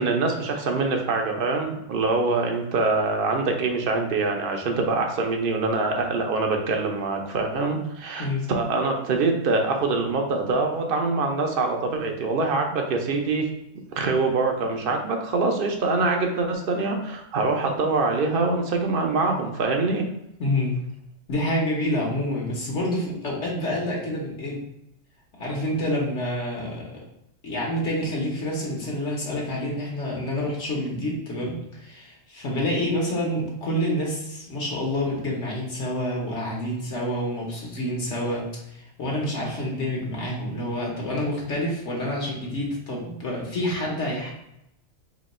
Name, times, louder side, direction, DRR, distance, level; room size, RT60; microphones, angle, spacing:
voice 1, 0.0-13.5 14.0-20.1, right 3 dB, 55° right, 2 dB, 0.6 m, -24 dB
voice 2, 20.4-20.7 21.3-24.6 25.4-27.0 27.4-44.3, left 1 dB, 60° left, -3 dB, 1.2 m, -28 dB
3.0 x 2.8 x 4.1 m, 0.83 s
omnidirectional pair, 1.4 m